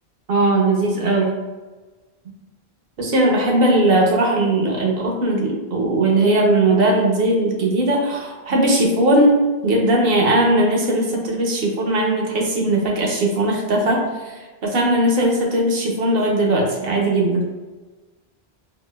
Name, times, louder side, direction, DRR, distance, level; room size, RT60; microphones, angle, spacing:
voice 1, 0.3-1.3 3.0-17.4, right 1 dB, 65° right, 0 dB, 0.9 m, -19 dB
4.1 x 2.5 x 2.2 m, 1.3 s
omnidirectional pair, 1.1 m